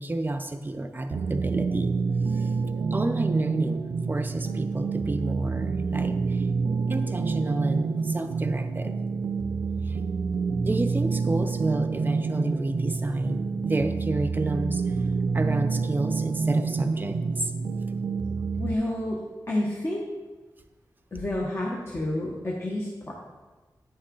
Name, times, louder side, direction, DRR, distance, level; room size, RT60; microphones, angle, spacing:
voice 1, 0.0-1.9 2.3-2.5 2.9-6.5 6.9-9.0 9.9-10.0 10.6-14.8 15.3-17.5, right 2 dB, 25° right, 8 dB, 0.6 m, -30 dB
sound 1, 1.1-18.7, right 4 dB, 85° right, 0.4 m, -28 dB
voice 2, 18.6-19.2 19.5-20.0 21.1-23.1, left 1 dB, 35° left, -3 dB, 1.2 m, -29 dB
9.5 x 6.4 x 3.8 m, 1.3 s
wide cardioid pair, 100°, 7 cm